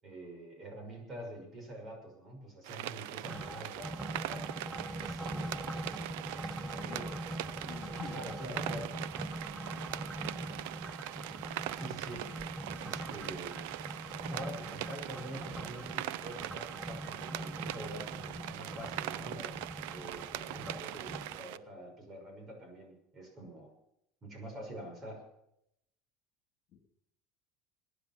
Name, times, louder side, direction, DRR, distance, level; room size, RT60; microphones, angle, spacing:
voice 1, 0.0-4.5 5.0-5.7 6.3-6.8 8.1-8.9 11.8-12.3 12.8-13.6 14.3-19.6 19.9-23.7 24.2-25.2, right 1 dB, 30° right, 3 dB, 5.9 m, -46 dB
sound 1, 2.6-21.6, right 14 dB, 85° right, 0.6 m, -41 dB
sound 2, 3.3-21.4, right 1 dB, 5° right, 0.6 m, -42 dB
voice 2, 6.6-8.2, left 5 dB, 45° left, 3 dB, 3.3 m, -48 dB
23.0 x 10.0 x 6.0 m, 0.78 s
cardioid pair, 145°, 0 cm